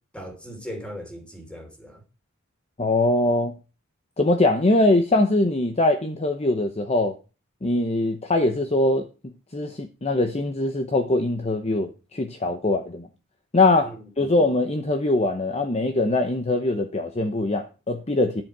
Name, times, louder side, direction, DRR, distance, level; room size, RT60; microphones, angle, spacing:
voice 1, 0.1-2.0 13.8-14.3, equal, 5° left, 2.9 m, -39 dB
voice 2, 2.8-3.5 4.2-7.2 7.6-13.1 13.5-18.4, left 2 dB, 30° left, 0.8 m, -22 dB
10.5 x 7.6 x 4.7 m
head